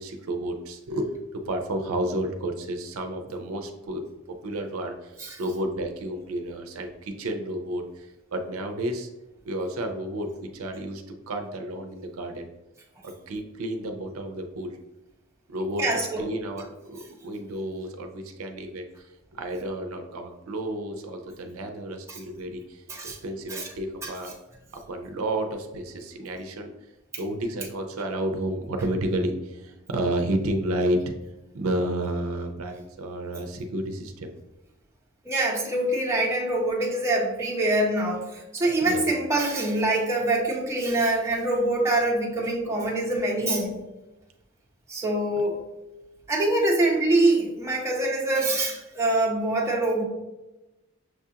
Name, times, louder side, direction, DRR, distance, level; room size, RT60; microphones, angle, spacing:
voice 1, 0.0-4.0 4.4-9.1 9.4-12.5 13.0-14.8 15.5-15.9 16.2-18.9 19.3-24.3 24.7-26.7 27.2-31.1 31.5-34.3 38.8-39.0, right 1 dB, 75° right, 5 dB, 0.5 m, -31 dB
voice 2, 15.8-16.2 22.1-22.2 22.9-23.2 23.5-23.7 24.0-24.1 35.3-43.7 44.9-45.6 46.3-50.1, right 2 dB, 15° right, -3 dB, 0.7 m, -24 dB
6.2 x 2.4 x 2.7 m, 1.0 s
head